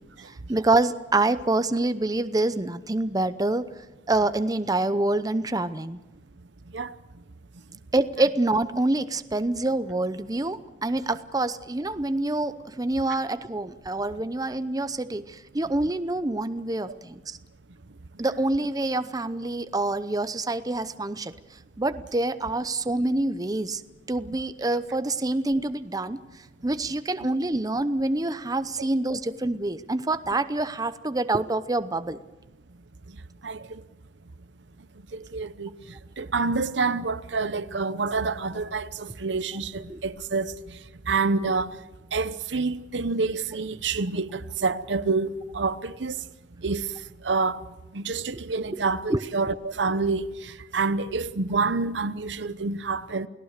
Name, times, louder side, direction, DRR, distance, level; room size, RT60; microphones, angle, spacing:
voice 1, 0.5-3.7 4.1-6.0 7.9-17.4 18.2-21.3 21.8-23.8 24.1-26.2 26.6-32.2 39.9-40.0 48.7-48.8 49.1-49.2, right 2 dB, 20° right, 0.7 m, -26 dB
voice 2, 35.1-35.7 36.2-40.5 41.1-41.7 42.1-46.2 46.6-46.9 47.2-47.6 47.9-53.3, right 4 dB, 80° right, 0.9 m, -27 dB
29.0 x 18.0 x 6.7 m
head